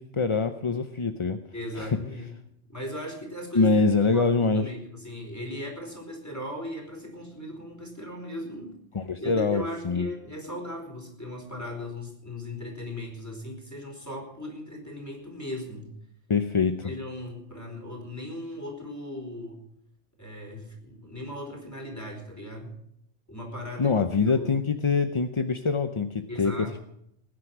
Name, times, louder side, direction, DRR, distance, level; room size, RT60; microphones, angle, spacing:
voice 1, 0.0-1.4 1.8-2.0 3.5-4.6 8.9-10.1 16.3-16.9 23.8-26.5, left 4 dB, 30° left, 8 dB, 0.6 m, -24 dB
voice 2, 1.5-2.3 2.7-3.8 4.1-8.8 9.2-15.9 16.8-19.6 20.2-22.7 23.3-23.9 24.2-24.5 26.3-26.8, left 1 dB, 15° left, 1 dB, 4.6 m, -37 dB
19.5 x 10.0 x 6.0 m, 0.74 s
omnidirectional pair, 1.2 m